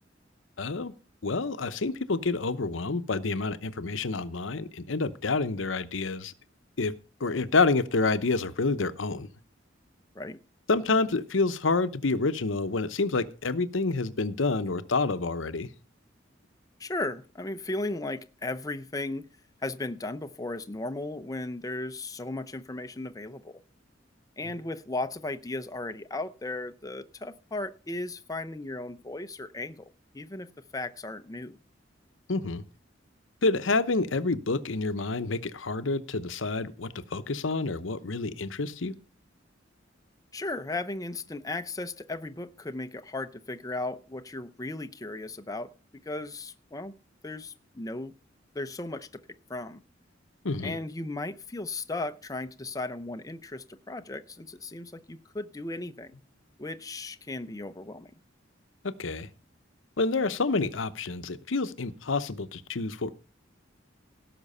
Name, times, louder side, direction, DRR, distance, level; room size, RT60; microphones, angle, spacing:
voice 1, 0.6-0.9 1.2-6.3 6.8-6.9 7.2-9.3 10.7-15.7 32.3-32.6 33.4-38.9 50.4-50.8 58.8-59.3 60.0-63.1, left 3 dB, 90° left, 12 dB, 0.9 m, -28 dB
voice 2, 16.8-19.2 19.6-23.6 24.4-31.6 40.3-45.7 46.0-46.9 47.2-48.1 48.5-49.2 49.5-49.8 50.6-56.1 56.6-58.1, left 2 dB, 20° left, 9 dB, 0.7 m, -36 dB
17.0 x 6.1 x 5.5 m, 0.36 s
head